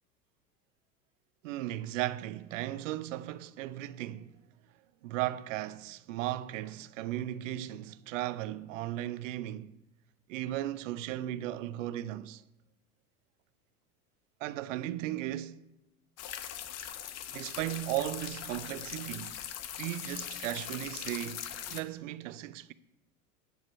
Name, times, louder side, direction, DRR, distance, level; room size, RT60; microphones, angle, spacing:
voice 1, 1.4-4.3 5.0-9.8 10.3-12.4 14.4-15.6 17.3-19.4 19.8-22.7, right 14 dB, 55° right, 0.6 m, -36 dB
sound 1, 16.2-21.8, left 10 dB, 35° left, 0.9 m, -41 dB
11.0 x 4.9 x 7.3 m
figure-of-eight pair, 80°, 45 cm